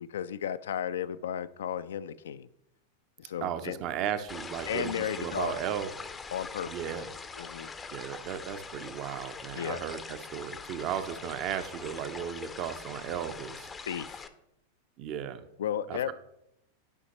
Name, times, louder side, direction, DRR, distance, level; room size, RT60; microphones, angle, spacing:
voice 1, 0.1-2.5 3.2-3.8 4.7-5.6 6.3-6.7 7.4-7.7 9.5-9.8 13.8-14.3 15.6-16.1, left 9 dB, 60° left, 14 dB, 0.3 m, -34 dB
voice 2, 3.4-5.9 6.6-7.1 7.9-13.7 15.0-15.5 15.9-16.1, right 9 dB, 40° right, 10 dB, 0.6 m, -35 dB
sound 1, 4.3-14.3, left 4 dB, 15° left, 0.5 m, -43 dB
11.0 x 5.7 x 3.0 m, 0.82 s
figure-of-eight pair, 90°, 0 cm